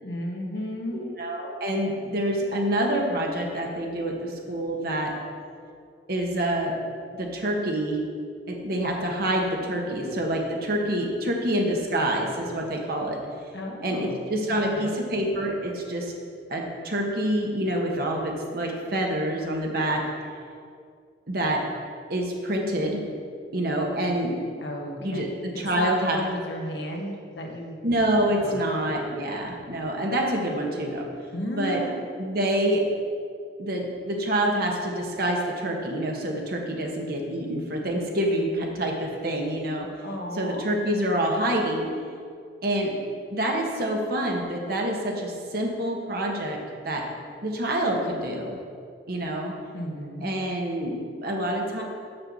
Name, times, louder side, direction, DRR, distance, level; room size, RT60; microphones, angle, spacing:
voice 1, 0.0-1.1 13.5-15.0 24.6-25.3 25.5-27.8 28.4-29.0 31.3-32.0 40.0-40.7 49.7-50.3, equal, 70° left, 1 dB, 1.3 m, -34 dB
voice 2, 0.9-5.1 6.1-6.8 7.2-8.0 8.5-13.2 13.8-16.1 16.5-20.0 21.3-21.6 22.1-23.0 23.5-24.3 25.0-25.3 25.6-26.2 27.8-31.1 31.5-31.8 32.2-32.8 33.6-39.9 40.4-41.9 42.6-42.9 43.3-46.6 46.8-47.0 47.4-48.6 49.1-49.5 50.2-51.8, right 1 dB, 60° right, 0 dB, 1.4 m, -27 dB
6.8 x 5.8 x 7.1 m, 2.2 s
head